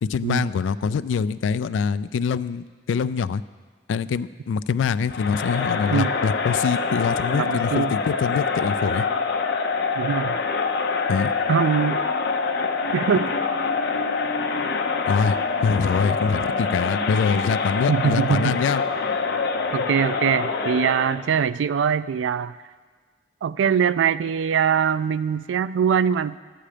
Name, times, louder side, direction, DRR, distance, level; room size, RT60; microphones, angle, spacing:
voice 1, 0.0-3.4 3.9-9.1 11.1-11.3 15.1-18.8, left 6 dB, 90° left, 15 dB, 0.3 m, -24 dB
Crowd, 5.1-21.3, left 4 dB, 60° left, 0.7 m, -25 dB
voice 2, 7.3-7.9 10.0-10.4 11.5-12.0 12.9-13.3 17.9-18.6 19.7-22.6 23.4-26.4, right 7 dB, 85° right, 16 dB, 0.3 m, -22 dB
11.5 x 8.6 x 5.0 m, 1.5 s
head